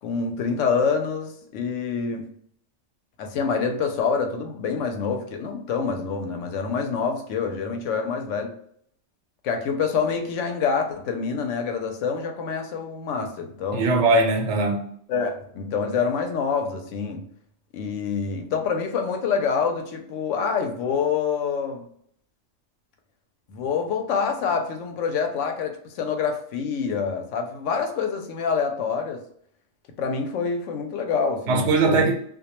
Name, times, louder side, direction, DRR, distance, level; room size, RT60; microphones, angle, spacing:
voice 1, 0.0-2.3 3.2-8.5 9.4-14.0 15.1-17.2 17.7-21.9 23.5-29.2 30.0-32.1, left 5 dB, 90° left, 0.9 m, -26 dB
voice 2, 13.7-14.9 31.5-32.2, right 3 dB, 80° right, 0.9 m, -20 dB
2.2 x 2.2 x 2.9 m
omnidirectional pair, 1.2 m